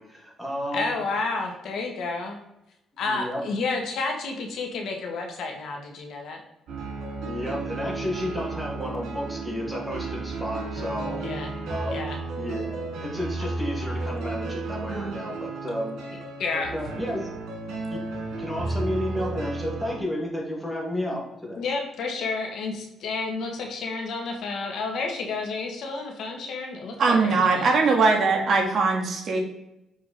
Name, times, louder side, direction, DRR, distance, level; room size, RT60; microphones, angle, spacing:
voice 1, 0.0-0.9 2.9-3.4 7.2-11.2 11.7-12.0 12.4-15.9 16.5-17.3 17.9-18.0 18.4-21.6, left 1 dB, 5° left, -2 dB, 2.1 m, -32 dB
voice 2, 0.7-2.4 3.0-6.4 11.2-11.5 11.9-12.2 16.1-16.7 21.6-27.7, left 3 dB, 70° left, 2 dB, 1.5 m, -30 dB
sound 1, 6.7-20.0, right 3 dB, 80° right, 2.3 m, -33 dB
voice 3, 27.0-29.4, right 4 dB, 50° right, 1 dB, 1.7 m, -21 dB
6.8 x 4.8 x 4.0 m, 0.87 s
cardioid pair, 130°, 0 cm